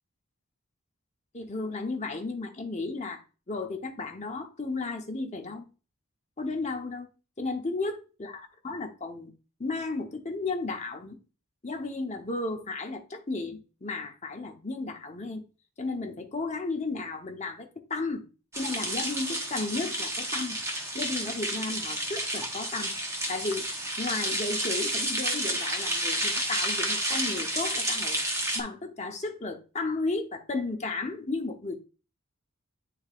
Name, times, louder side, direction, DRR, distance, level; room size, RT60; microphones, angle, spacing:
voice 1, 1.3-5.6 6.4-7.1 7.4-9.3 9.6-11.2 11.6-15.4 15.8-18.3 18.6-20.6 20.9-23.0 23.3-23.7 24.0-28.2 28.5-31.8, left 3 dB, 30° left, 1.0 m, -34 dB
sound 1, 18.5-28.6, right 1 dB, 15° right, 1.1 m, -30 dB
9.4 x 4.2 x 2.5 m
head